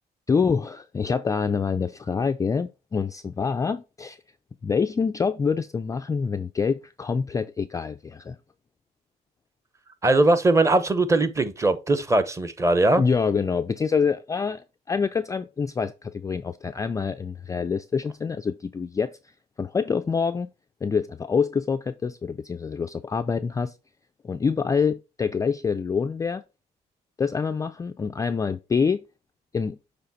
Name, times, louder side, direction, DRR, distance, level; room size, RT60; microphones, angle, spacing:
voice 1, 0.3-4.2 4.6-8.4 13.0-19.1 19.6-20.5 20.8-23.7 24.2-26.4 27.2-29.0 29.5-29.8, left 5 dB, 20° left, 0.3 m, -26 dB
voice 2, 10.0-13.0, right 2 dB, 15° right, 0.8 m, -20 dB
7.0 x 3.4 x 4.2 m
cardioid pair, 110°, 17 cm